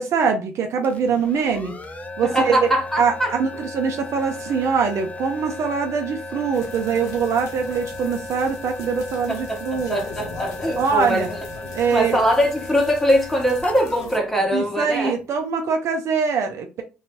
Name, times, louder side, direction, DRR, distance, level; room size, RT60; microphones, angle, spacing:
voice 1, 0.0-1.7 2.2-2.7 3.0-10.0 10.8-11.3 11.7-12.2 14.5-16.8, right 5 dB, 55° right, 0.5 m, -23 dB
sound 1, 0.8-15.4, left 2 dB, 25° left, 0.5 m, -36 dB
voice 2, 2.2-3.4 9.3-11.2 11.9-15.2, equal, 5° left, 1.3 m, -22 dB
sound 2, 6.5-14.2, left 4 dB, 60° left, 0.7 m, -41 dB
2.7 x 2.2 x 2.9 m
hypercardioid pair, 55°, 6 cm